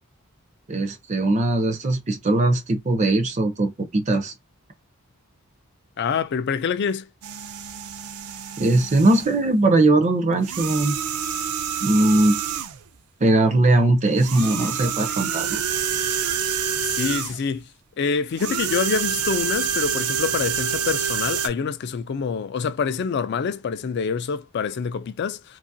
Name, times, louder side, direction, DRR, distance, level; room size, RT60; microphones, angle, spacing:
voice 1, 0.7-4.3 8.6-11.0 11.8-12.4 13.2-15.6, right 2 dB, 30° right, 0.5 m, -20 dB
voice 2, 6.0-7.1 14.4-14.7 15.0-15.6 16.9-17.7 18.0-25.6, left 6 dB, 50° left, 0.3 m, -26 dB
sound 1, 7.2-9.4 10.4-12.8 14.2-17.5 18.4-21.5, right 7 dB, 80° right, 0.5 m, -27 dB
2.8 x 2.4 x 2.6 m
head